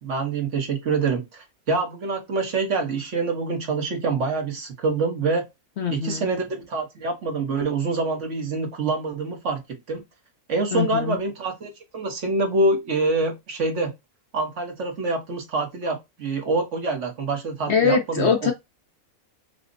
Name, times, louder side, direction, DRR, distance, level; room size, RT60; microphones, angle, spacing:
voice 1, 0.0-5.4 5.9-9.6 9.9-10.0 10.5-13.9 14.3-18.5, right 3 dB, 55° right, 1.2 m, -26 dB
voice 2, 5.8-6.3 10.7-11.2 17.7-18.5, left 6 dB, 60° left, 0.8 m, -22 dB
5.1 x 2.1 x 2.5 m
omnidirectional pair, 1.6 m